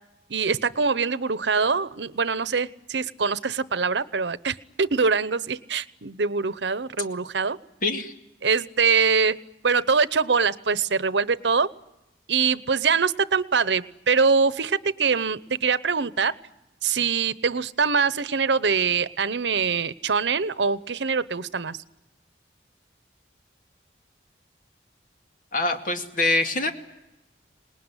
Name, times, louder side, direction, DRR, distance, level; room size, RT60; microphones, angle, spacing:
voice 1, 0.3-7.6 8.4-9.4 9.6-11.7 12.3-16.3 16.8-21.8, right 5 dB, 90° right, 16 dB, 0.9 m, -23 dB
voice 2, 7.8-8.1 25.5-26.7, left 2 dB, 50° left, 5 dB, 2.3 m, -24 dB
26.5 x 20.0 x 9.8 m, 0.94 s
head